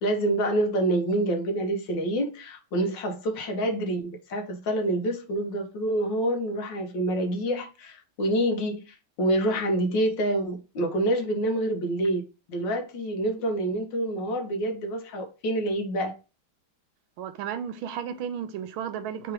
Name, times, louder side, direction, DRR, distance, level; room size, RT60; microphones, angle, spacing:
voice 1, 0.0-12.2 12.5-16.1, right 1 dB, 65° left, 1.5 m, -27 dB
voice 2, 17.2-19.3, right 8 dB, 90° right, 1.4 m, -33 dB
3.7 x 3.0 x 4.7 m
omnidirectional pair, 2.3 m